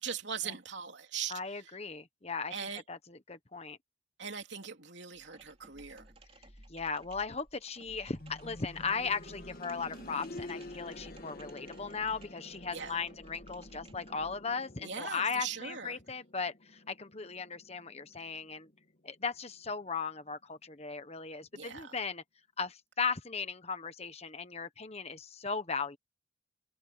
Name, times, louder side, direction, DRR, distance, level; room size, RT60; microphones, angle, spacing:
voice 1, 0.0-1.4 2.5-2.8 4.2-6.1 12.7-13.0 14.8-16.0 21.5-22.0, right 7 dB, 65° right, 3.4 m, -40 dB
voice 2, 1.3-2.5 2.9-3.8 6.7-18.7 19.0-22.2 22.6-26.0, left 5 dB, 35° left, 1.2 m, -37 dB
sound 1, 5.1-14.5, right 1 dB, 30° right, 3.7 m, -56 dB
sound 2, 8.2-19.0 19.3-19.4 20.3-20.4, left 1 dB, 50° left, 1.6 m, -50 dB
open air
head